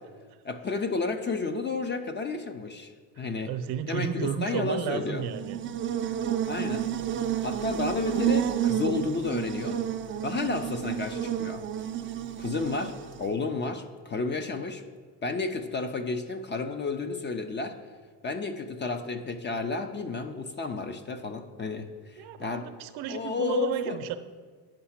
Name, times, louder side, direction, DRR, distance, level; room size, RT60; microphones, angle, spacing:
voice 1, 0.4-3.5 3.9-5.2 6.4-6.9 7.4-9.8 10.2-11.6 12.4-14.8 15.2-17.8 18.2-22.7 23.1-24.0, left 4 dB, 25° left, 8 dB, 0.5 m, -31 dB
voice 2, 3.2-5.6 22.2-24.2, right 9 dB, 70° right, 10 dB, 0.7 m, -33 dB
Buzz, 5.2-13.3, right 10 dB, 30° right, 0.4 m, -30 dB
8.9 x 5.6 x 5.8 m, 1.5 s
cardioid pair, 120°, 41 cm